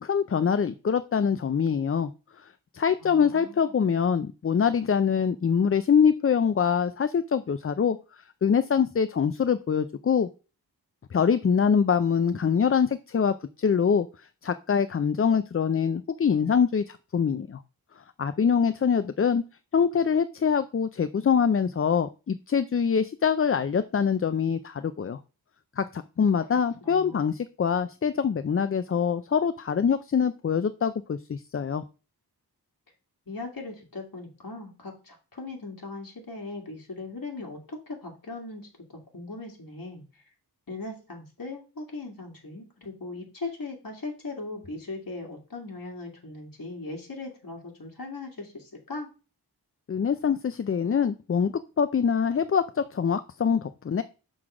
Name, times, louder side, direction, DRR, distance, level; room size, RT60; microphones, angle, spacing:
voice 1, 0.0-2.1 2.4-10.3 11.1-14.1 14.4-17.6 18.2-19.4 19.7-25.2 25.8-31.8 49.9-54.0, left 6 dB, 35° left, 12 dB, 0.4 m, -24 dB
voice 2, 3.0-3.8 26.8-27.2 33.3-40.2 40.7-49.1, left 3 dB, 55° left, 0 dB, 2.1 m, -39 dB
6.3 x 3.9 x 5.9 m, 0.32 s
wide cardioid pair, 80°, 40 cm